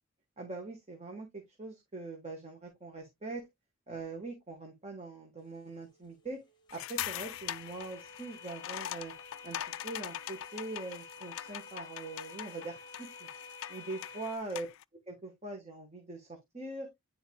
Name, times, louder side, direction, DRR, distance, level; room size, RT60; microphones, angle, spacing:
voice 1, 0.4-3.5 3.9-6.4 6.7-9.1 9.4-9.6 9.8-13.3 13.7-14.7 15.1-16.9, right 2 dB, 30° right, 1.4 m, -42 dB
sound 1, 5.4-14.4, left 4 dB, 20° left, 1.1 m, -52 dB
sound 2, 6.7-14.8, left 12 dB, 65° left, 0.3 m, -42 dB
10.5 x 4.0 x 2.3 m
head